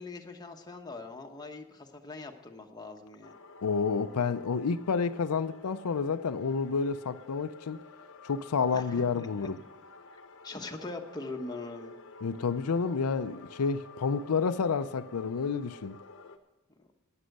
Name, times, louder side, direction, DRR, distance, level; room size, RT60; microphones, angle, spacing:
voice 1, 0.0-3.3 8.7-9.5 10.1-11.9 16.8-16.9, left 3 dB, 20° left, 1.1 m, -42 dB
sound 1, 3.2-16.4, left 3 dB, 60° left, 0.9 m, -51 dB
voice 2, 3.6-7.8 8.2-9.6 12.2-16.0, left 5 dB, 90° left, 0.5 m, -29 dB
11.5 x 9.0 x 6.5 m
head